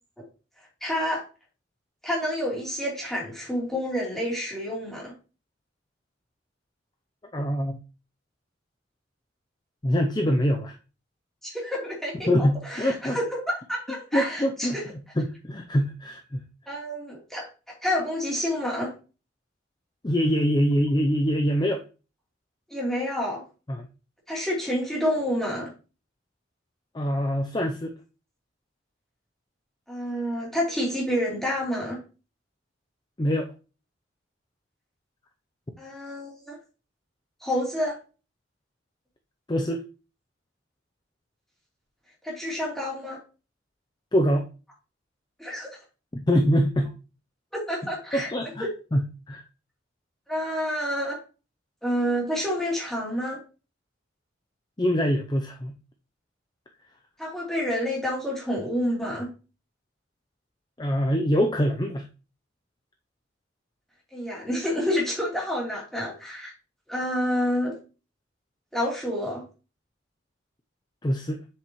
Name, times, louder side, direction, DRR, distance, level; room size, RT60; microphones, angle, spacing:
voice 1, 0.8-1.2 2.0-5.1 11.4-14.8 16.7-17.5 17.8-18.9 22.7-23.4 24.3-25.7 29.9-32.0 35.8-36.6 37.4-38.0 42.2-43.2 45.4-45.8 47.5-48.3 50.3-51.2 51.8-53.4 57.2-59.3 64.1-66.5 66.9-67.8 68.7-69.4, equal, ahead, -4 dB, 3.0 m, -28 dB
voice 2, 7.3-7.8 9.8-10.7 12.3-13.2 14.1-14.8 15.2-16.4 20.0-21.8 23.7-23.9 26.9-27.9 33.2-33.5 39.5-39.8 44.1-44.5 46.1-46.9 48.1-48.6 48.9-49.4 54.8-55.7 60.8-62.1 71.0-71.4, equal, 20° left, 5 dB, 0.5 m, -24 dB
7.6 x 6.7 x 3.0 m, 0.34 s
head